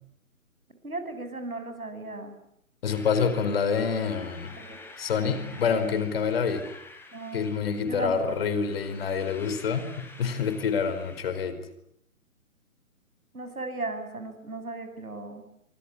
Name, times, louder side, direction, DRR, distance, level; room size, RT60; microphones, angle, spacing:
voice 1, 0.8-2.4 4.6-4.8 7.1-7.5 7.8-8.6 13.3-15.4, right 2 dB, 80° right, 8 dB, 7.6 m, -36 dB
voice 2, 2.8-4.5 5.0-6.6 7.3-11.6, left 6 dB, 45° left, 11 dB, 4.7 m, -27 dB
sound 1, 2.9-11.4, left 3 dB, 5° left, 3.9 m, -48 dB
26.5 x 26.0 x 8.6 m, 0.75 s
figure-of-eight pair, 135°, 42 cm